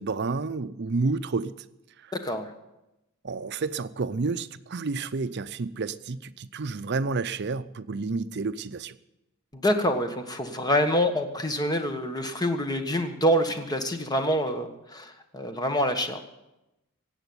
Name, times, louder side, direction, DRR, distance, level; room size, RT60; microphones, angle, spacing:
voice 1, 0.0-1.5 3.2-8.9, right 4 dB, 50° right, 13 dB, 0.6 m, -30 dB
voice 2, 9.5-16.2, equal, 20° left, 7 dB, 1.4 m, -26 dB
17.5 x 8.1 x 9.6 m, 0.94 s
head